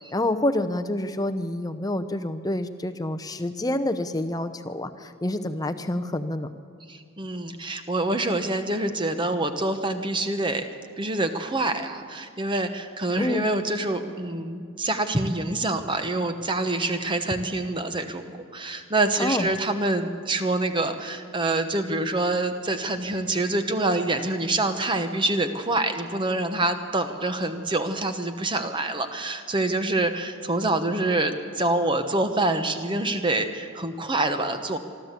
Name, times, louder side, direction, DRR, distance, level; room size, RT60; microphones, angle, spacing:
voice 1, 0.1-6.5 13.2-13.5 19.2-19.5, left 1 dB, 15° left, 8 dB, 0.7 m, -27 dB
voice 2, 6.9-10.7 11.0-34.8, right 2 dB, 20° right, 8 dB, 1.0 m, -26 dB
24.0 x 13.0 x 8.3 m, 2.1 s
head